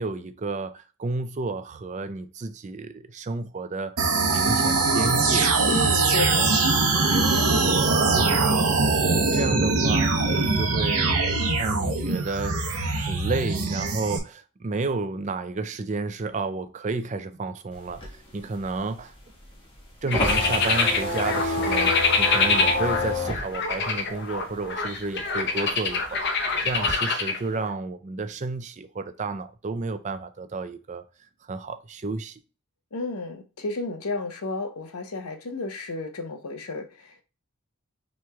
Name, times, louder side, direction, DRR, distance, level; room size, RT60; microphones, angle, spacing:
voice 1, 0.0-3.9 4.3-5.5 8.1-8.5 9.3-11.3 11.6-19.1 20.0-26.2 26.6-31.0 31.4-32.4, right 3 dB, 35° right, 0.4 m, -31 dB
sound 1, 4.0-14.2, right 3 dB, 80° right, 0.8 m, -22 dB
voice 2, 5.7-6.6 7.1-7.5 32.9-37.2, left 3 dB, 85° left, 0.7 m, -32 dB
sound 2, 17.7-24.8 25.2-26.9, left 2 dB, 25° left, 1.3 m, -29 dB
sound 3, 20.1-27.7, left 4 dB, 50° left, 0.7 m, -25 dB
5.9 x 3.1 x 2.3 m
head